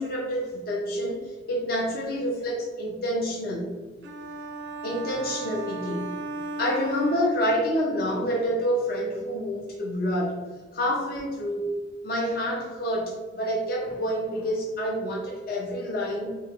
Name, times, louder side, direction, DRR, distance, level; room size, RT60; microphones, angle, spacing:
voice 1, 0.0-3.7 4.8-6.2 6.6-10.4 10.7-11.7 12.0-16.4, equal, 50° left, -3 dB, 0.6 m, -28 dB
sound 1, 4.0-7.9, right 3 dB, 80° right, 0.5 m, -36 dB
3.0 x 2.8 x 3.5 m, 1.3 s
head